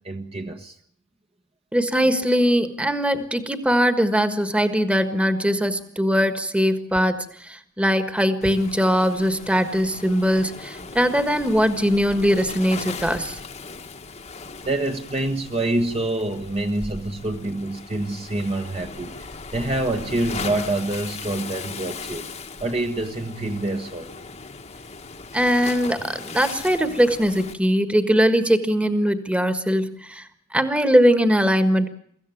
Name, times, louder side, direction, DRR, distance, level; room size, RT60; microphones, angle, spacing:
voice 1, 0.0-0.8 14.6-22.3 22.6-24.1, right 2 dB, 30° right, 4 dB, 1.2 m, -26 dB
voice 2, 1.7-13.4 25.3-30.2 30.5-31.9, equal, 5° right, 10 dB, 1.5 m, -21 dB
Waves surf, 8.4-27.5, left 4 dB, 30° left, 1.3 m, -38 dB
23.5 x 15.0 x 9.3 m, 0.66 s
head